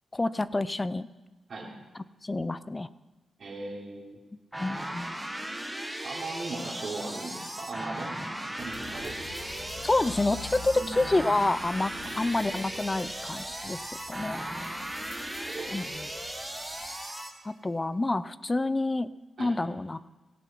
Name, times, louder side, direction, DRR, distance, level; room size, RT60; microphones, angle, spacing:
voice 1, 0.1-1.1 2.2-2.9 4.6-5.1 9.8-13.8 14.1-14.4 15.7-16.1 17.4-19.1 19.4-20.0, left 2 dB, 20° left, 16 dB, 0.6 m, -28 dB
voice 2, 3.4-4.2 6.0-9.2 10.7-10.9 12.0-12.1 13.6-13.8 15.4-15.7 19.4-19.5, right 3 dB, 50° right, -6 dB, 3.3 m, -38 dB
sound 1, 4.5-17.3, right 1 dB, 5° right, 1.7 m, -37 dB
sound 2, 8.2-17.9, right 3 dB, 35° right, 1.4 m, -48 dB
sound 3, 8.6-16.9, left 5 dB, 85° left, 2.8 m, -47 dB
17.0 x 16.5 x 4.6 m, 1.2 s
wide cardioid pair, 115°, 0 cm